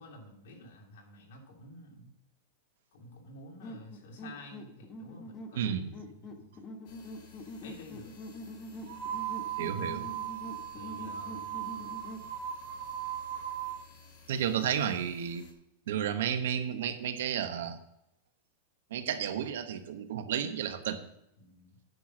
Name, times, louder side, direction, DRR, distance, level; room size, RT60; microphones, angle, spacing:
voice 1, 0.0-2.1 2.9-5.6 6.0-6.3 7.6-8.1 10.7-11.9 21.4-21.8, left 1 dB, 70° left, 0 dB, 2.9 m, -51 dB
sound 1, 3.6-12.3, left 1 dB, 25° left, 1.2 m, -45 dB
voice 2, 5.5-5.9 9.6-10.0 14.3-15.4 15.9-17.8 18.9-21.0, right 9 dB, 80° right, 9 dB, 1.1 m, -32 dB
sound 2, 6.9-15.5, left 4 dB, 50° left, 2.0 m, -56 dB
sound 3, 8.8-13.8, right 10 dB, 50° right, 1.7 m, -38 dB
9.2 x 6.0 x 6.2 m, 0.81 s
supercardioid pair, 160°, 0 cm